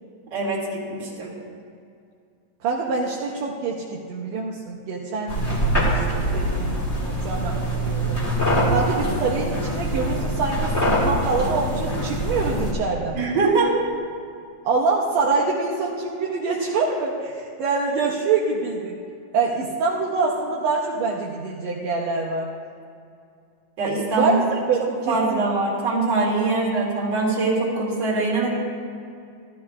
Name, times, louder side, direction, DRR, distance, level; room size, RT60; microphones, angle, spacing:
voice 1, 0.3-1.3 13.1-13.8 23.8-24.3 25.1-28.5, right 3 dB, 40° right, -5 dB, 2.3 m, -23 dB
voice 2, 2.6-8.2 8.7-13.2 14.6-19.0 19.3-22.5 24.1-25.4, right 4 dB, 75° right, -3 dB, 1.9 m, -25 dB
sound 1, 5.3-12.7, equal, 25° left, 1.8 m, -24 dB
14.5 x 13.5 x 2.3 m, 2.4 s
omnidirectional pair, 3.4 m